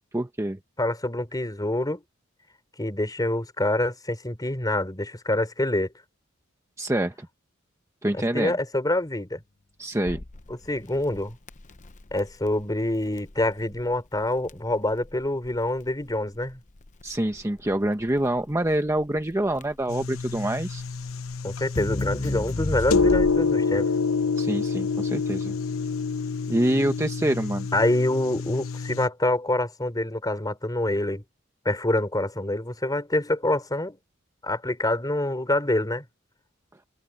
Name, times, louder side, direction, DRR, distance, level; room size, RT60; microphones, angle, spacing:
voice 1, 0.1-0.6 6.8-7.3 8.0-8.6 9.8-10.2 17.0-20.8 24.4-25.5 26.5-27.7, right 1 dB, 15° right, 1.0 m, -26 dB
voice 2, 0.8-2.0 2.8-5.9 8.1-9.4 10.5-11.4 12.1-16.6 21.4-23.9 27.7-31.2 31.7-34.0 34.4-36.1, left 1 dB, 20° left, 3.5 m, -26 dB
Crackle, 10.1-23.6, left 2 dB, 35° left, 0.8 m, -35 dB
sound 1, 19.9-29.1, left 4 dB, 80° left, 1.0 m, -27 dB
head